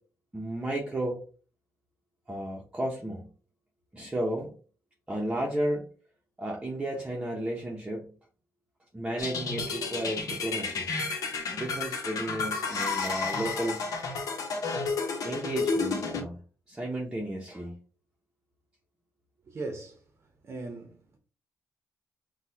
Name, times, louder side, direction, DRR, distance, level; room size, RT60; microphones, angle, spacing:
voice 1, 0.3-1.2 2.3-3.3 3.9-4.5 5.1-5.9 6.4-8.1 8.9-10.9 11.5-13.8 15.2-16.4 16.7-17.8, right 1 dB, 15° right, 0.8 m, -33 dB
sound 1, 9.2-16.2, left 4 dB, 70° left, 1.0 m, -31 dB
voice 2, 19.5-20.0 20.4-21.2, right 3 dB, 40° right, 0.8 m, -39 dB
6.0 x 2.3 x 2.8 m
wide cardioid pair, 140°, 6 cm